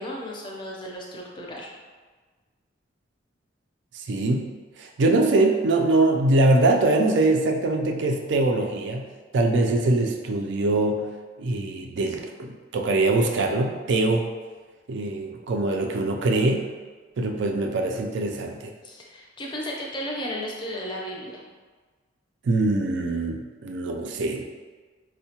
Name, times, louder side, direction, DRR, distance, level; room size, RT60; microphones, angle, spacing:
voice 1, 0.0-1.7 18.8-21.4, equal, 25° left, -1 dB, 0.4 m, -34 dB
voice 2, 3.9-4.5 4.8-9.1 9.3-11.0 11.4-14.3 14.9-16.7 17.2-18.7 22.4-24.4, right 2 dB, 65° right, 3 dB, 0.4 m, -23 dB
4.4 x 2.1 x 2.8 m, 1.4 s
head